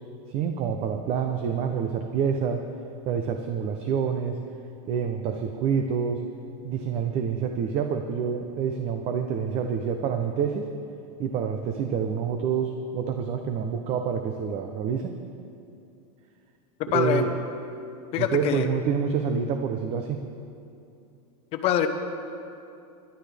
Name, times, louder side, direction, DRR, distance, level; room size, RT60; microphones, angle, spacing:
voice 1, 0.3-2.7 3.0-4.4 4.9-6.2 6.6-10.7 11.2-15.1 16.9-17.3 18.2-20.2, right 7 dB, 30° right, 5 dB, 0.7 m, -27 dB
voice 2, 16.8-17.3 18.1-18.7 21.5-21.9, left 10 dB, 30° left, 6 dB, 1.0 m, -24 dB
25.5 x 11.5 x 3.4 m, 2.6 s
supercardioid pair, 165°, 19 cm